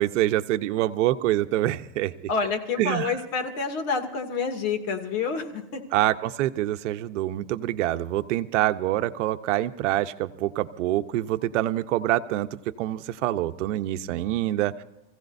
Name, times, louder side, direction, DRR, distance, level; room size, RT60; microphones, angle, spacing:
voice 1, 0.0-2.1 2.8-3.1 5.9-12.5 12.8-14.8, right 14 dB, 70° right, 10 dB, 0.9 m, -25 dB
voice 2, 2.3-5.8, left 5 dB, 40° left, 5 dB, 2.5 m, -28 dB
28.5 x 16.0 x 2.7 m, 0.90 s
supercardioid pair, 150°, 38 cm